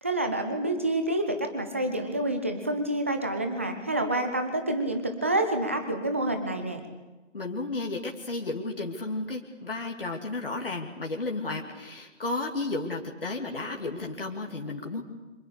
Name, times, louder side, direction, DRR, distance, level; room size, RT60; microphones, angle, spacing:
voice 1, 0.0-6.8, right 1 dB, 10° right, 6 dB, 0.9 m, -28 dB
voice 2, 7.3-15.0, left 2 dB, 45° left, 1 dB, 2.8 m, -33 dB
27.0 x 25.5 x 6.8 m, 1.2 s
figure-of-eight pair, 160°, 37 cm